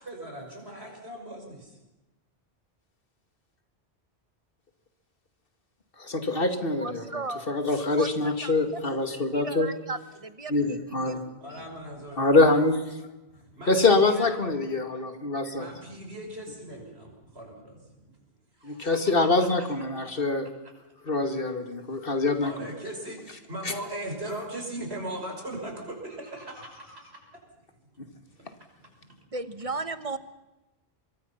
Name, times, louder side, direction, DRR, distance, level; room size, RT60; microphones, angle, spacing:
voice 1, 0.0-1.8 11.4-12.3 13.3-14.3 15.5-18.1 18.6-19.0 19.4-19.5 22.4-27.2 28.1-28.2, right 1 dB, 80° right, 2 dB, 6.0 m, -39 dB
voice 2, 6.0-9.7 10.5-11.2 12.2-12.8 13.7-15.7 18.6-20.5 21.0-22.7 23.6-23.7, left 3 dB, 60° left, 7 dB, 2.4 m, -24 dB
voice 3, 6.8-7.5 8.0-8.5 9.1-11.7 29.3-30.2, right 3 dB, 35° right, 12 dB, 1.2 m, -36 dB
24.5 x 23.0 x 5.8 m, 1.0 s
omnidirectional pair, 1.1 m